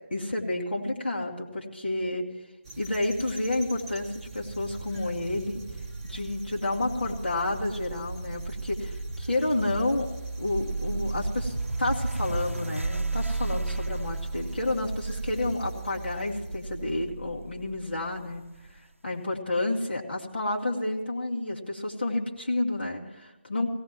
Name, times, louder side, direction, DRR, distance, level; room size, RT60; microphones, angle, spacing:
voice 1, 0.1-2.3 2.8-5.6 6.0-10.1 10.4-18.4 19.0-23.7, left 2 dB, 50° left, -2 dB, 2.3 m, -30 dB
sound 1, 2.6-17.0, right 4 dB, 25° right, 1.6 m, -44 dB
sound 2, 5.5-18.7, right 3 dB, 80° right, 0.6 m, -34 dB
18.0 x 17.5 x 3.1 m, 1.2 s
figure-of-eight pair, 155°, 7 cm